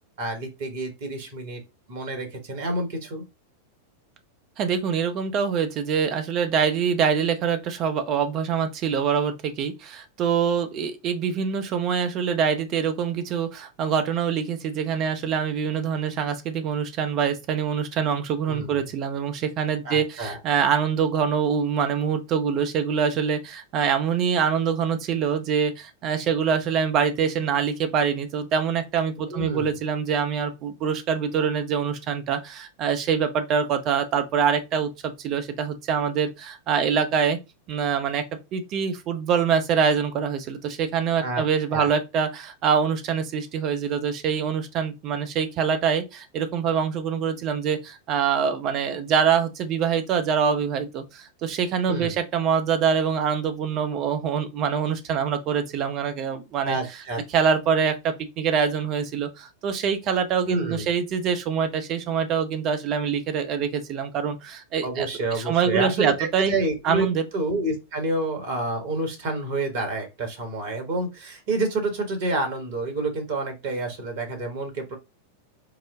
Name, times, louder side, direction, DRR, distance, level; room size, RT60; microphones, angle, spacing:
voice 1, 0.2-1.6 1.9-3.2 18.5-18.8 19.8-20.4 29.2-29.8 41.2-41.4 41.7-41.9 51.9-52.1 56.6-57.2 60.4-60.9 64.8-67.1 67.3-74.9, right 2 dB, 55° right, 1.5 m, -28 dB
voice 2, 4.6-37.4 37.7-38.2 38.5-56.8 57.3-65.1 65.3-66.5 66.8-67.2, right 7 dB, 35° right, 0.8 m, -25 dB
4.9 x 2.2 x 3.6 m
figure-of-eight pair, 90°, 0 cm